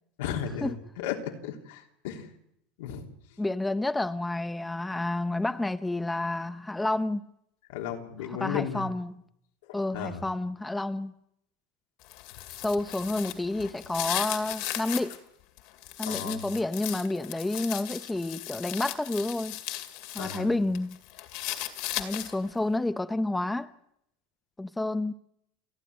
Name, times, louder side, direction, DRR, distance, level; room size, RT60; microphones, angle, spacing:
voice 1, 0.2-2.3 2.8-3.1 7.7-8.8 9.9-10.2 16.0-16.4 20.2-20.5, left 8 dB, 85° left, 3.1 m, -34 dB
voice 2, 3.4-7.3 8.2-9.2 9.7-11.1 12.6-15.2 16.0-19.6 20.1-21.0 22.0-23.7 24.6-25.1, left 2 dB, 10° left, 0.8 m, -30 dB
sound 1, 12.0-15.2 15.6-20.4 20.7-22.5, left 15 dB, 70° left, 2.3 m, -36 dB
29.0 x 9.9 x 9.6 m
supercardioid pair, 120°, 0 cm